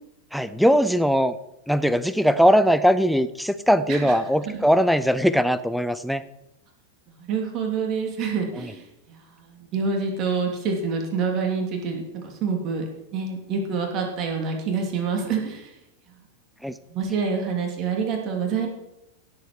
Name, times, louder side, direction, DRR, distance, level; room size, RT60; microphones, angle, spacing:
voice 1, 0.3-1.3 1.7-6.2 8.6-8.7 16.6-16.7, equal, ahead, 14 dB, 0.7 m, -20 dB
voice 2, 7.2-12.8 13.1-15.7 16.9-18.7, right 5 dB, 35° right, 2 dB, 3.0 m, -27 dB
16.5 x 8.0 x 4.7 m, 0.89 s
figure-of-eight pair, 90°, 0 cm